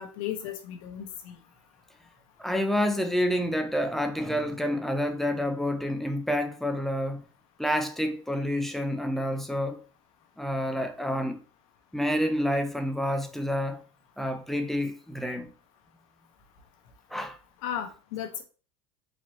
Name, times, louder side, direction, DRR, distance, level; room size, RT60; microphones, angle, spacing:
voice 1, 0.0-1.3 17.6-18.4, left 10 dB, 75° left, 1.1 m, -35 dB
voice 2, 2.4-7.2 7.6-9.8 10.4-11.4 11.9-13.8 14.2-15.5 17.1-17.4, equal, ahead, 0.3 m, -28 dB
4.2 x 3.0 x 3.0 m
supercardioid pair, 160°, 17 cm